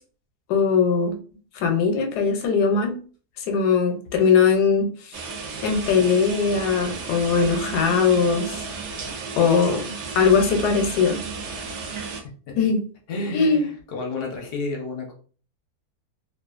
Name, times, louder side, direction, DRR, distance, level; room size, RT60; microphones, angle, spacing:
voice 1, 0.5-1.1 1.5-3.0 3.4-5.2 5.6-8.6 9.4-11.2 12.6-12.8 13.3-13.7, left 5 dB, 90° left, 5 dB, 1.2 m, -20 dB
sound 1, 5.1-12.2, right 4 dB, 65° right, 0.7 m, -33 dB
voice 2, 12.2-12.5 13.1-15.1, left 3 dB, 55° left, 1 dB, 0.7 m, -31 dB
2.6 x 2.4 x 2.4 m, 0.41 s
omnidirectional pair, 1.7 m